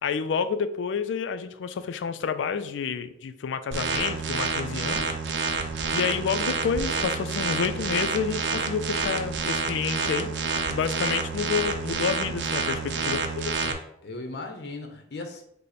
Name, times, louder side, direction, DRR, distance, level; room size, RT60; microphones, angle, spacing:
voice 1, 0.0-5.0 5.9-13.8, left 6 dB, 85° left, 11 dB, 0.3 m, -29 dB
sound 1, 3.7-13.7, right 4 dB, 70° right, 0.5 m, -28 dB
voice 2, 4.7-5.2 12.8-13.1 14.0-15.4, left 2 dB, 60° left, 4 dB, 0.7 m, -38 dB
5.3 x 2.1 x 4.1 m, 0.75 s
head